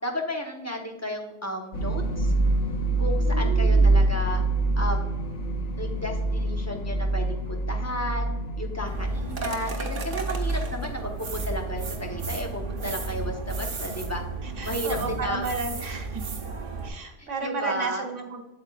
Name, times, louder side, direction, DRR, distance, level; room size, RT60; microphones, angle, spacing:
voice 1, 0.0-2.3 3.0-4.4 4.8-5.1 5.8-8.3 8.6-14.2 14.6-15.5 17.2-18.1, left 1 dB, 15° left, 1 dB, 0.9 m, -33 dB
sound 1, 1.7-14.6, right 2 dB, 75° left, 1.3 m, -26 dB
voice 2, 3.2-4.0 14.4-16.2 16.8-18.4, right 3 dB, 80° right, 4 dB, 1.5 m, -33 dB
sound 2, 8.9-16.9, right 4 dB, 50° right, 1.0 m, -34 dB
8.3 x 7.7 x 2.4 m, 1.0 s
omnidirectional pair, 1.2 m